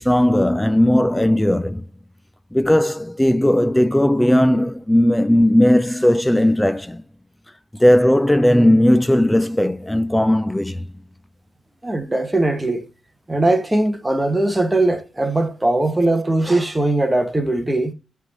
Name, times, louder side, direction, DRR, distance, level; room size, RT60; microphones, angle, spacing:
voice 1, 0.0-1.8 2.5-7.0 7.8-10.9, left 1 dB, 5° left, 0.4 m, -16 dB
voice 2, 11.8-12.9 13.3-17.9, right 2 dB, 10° right, 1.1 m, -20 dB
9.5 x 3.6 x 5.3 m
cardioid pair, 105°, 0 cm